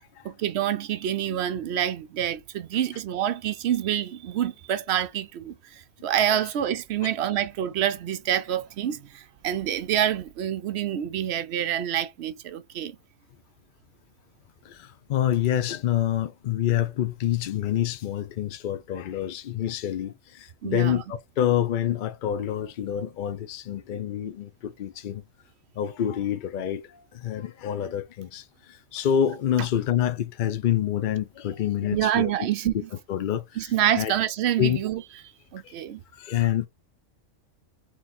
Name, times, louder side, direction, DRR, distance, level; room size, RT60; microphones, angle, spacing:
voice 1, 0.2-13.0 20.6-21.0 31.9-32.7 33.6-35.0 35.5-36.0, right 10 dB, 65° right, 0.8 m, -27 dB
voice 2, 14.6-25.2 25.8-32.3 33.1-33.7 34.0-34.1 34.6-34.8 35.6-35.7 36.1-36.7, left 10 dB, 60° left, 0.5 m, -27 dB
3.7 x 3.0 x 4.1 m
omnidirectional pair, 1.3 m